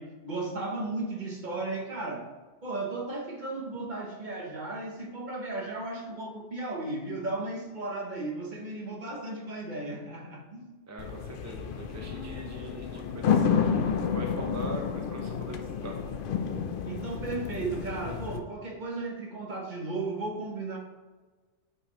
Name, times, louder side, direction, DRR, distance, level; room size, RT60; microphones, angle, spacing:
voice 1, 0.0-2.3 2.6-10.8 16.8-20.8, right 2 dB, 40° right, 0 dB, 1.0 m, -35 dB
voice 2, 10.9-16.0, right 1 dB, 15° right, 1 dB, 0.7 m, -41 dB
sound 1, 11.0-18.4, left 7 dB, 60° left, 0.6 m, -30 dB
8.5 x 4.8 x 3.0 m, 1.3 s
omnidirectional pair, 1.3 m